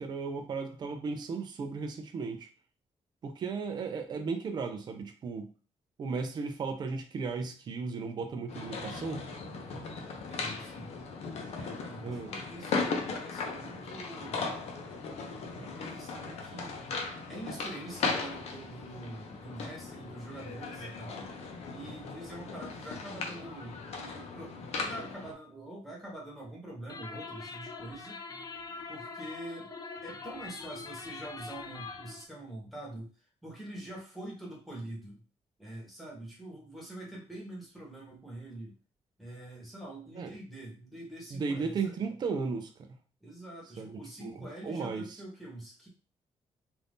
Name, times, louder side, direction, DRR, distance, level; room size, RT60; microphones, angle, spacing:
voice 1, 0.0-2.5 3.2-5.5 6.0-9.2 12.0-12.3 15.6-15.7 40.2-40.3 41.3-42.9 43.8-45.2, right 4 dB, 40° right, 5 dB, 0.4 m, -35 dB
sound 1, 8.5-25.3, left 4 dB, 70° left, 0.7 m, -38 dB
voice 2, 10.1-11.0 11.5-14.6 15.7-16.7 17.3-21.3 21.7-28.2 28.9-29.7 30.0-33.1 33.4-35.2 35.6-38.8 39.2-41.9 43.2-45.9, right 1 dB, ahead, -4 dB, 1.1 m, -45 dB
sound 2, 26.9-32.3, left 4 dB, 35° left, 0.4 m, -43 dB
2.6 x 2.6 x 3.4 m, 0.36 s
cardioid pair, 155°, 11 cm